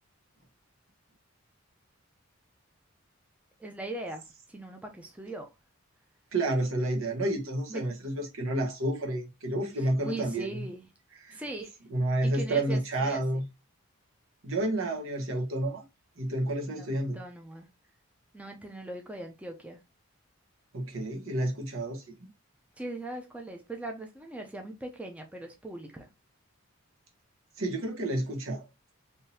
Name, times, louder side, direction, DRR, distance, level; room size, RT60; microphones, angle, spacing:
voice 1, 3.6-5.5 7.7-8.0 9.8-10.9 11.3-11.7 12.2-13.2 16.7-17.7 18.3-19.8 22.8-26.1, right 2 dB, 5° right, 0.5 m, -40 dB
voice 2, 6.3-10.6 11.2-11.4 11.9-13.4 14.4-15.8 16.2-17.2 20.7-22.0 27.6-28.6, right 1 dB, 70° right, 1.1 m, -30 dB
3.6 x 2.7 x 2.6 m
head